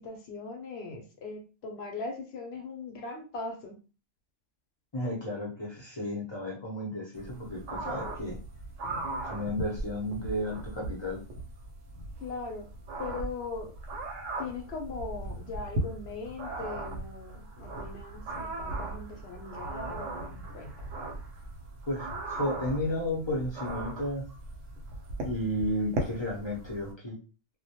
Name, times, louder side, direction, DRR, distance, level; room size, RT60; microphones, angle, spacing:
voice 1, 0.0-3.7 12.2-12.7 13.0-13.7 14.4-20.7, left 3 dB, 65° left, 2 dB, 0.7 m, -40 dB
voice 2, 4.9-8.4 9.2-11.2 21.9-24.3 25.2-27.2, left 1 dB, 30° left, -3 dB, 0.5 m, -33 dB
sound 1, 7.2-26.9, right 2 dB, 85° right, 1.0 m, -38 dB
2.1 x 2.1 x 2.8 m, 0.34 s
omnidirectional pair, 1.3 m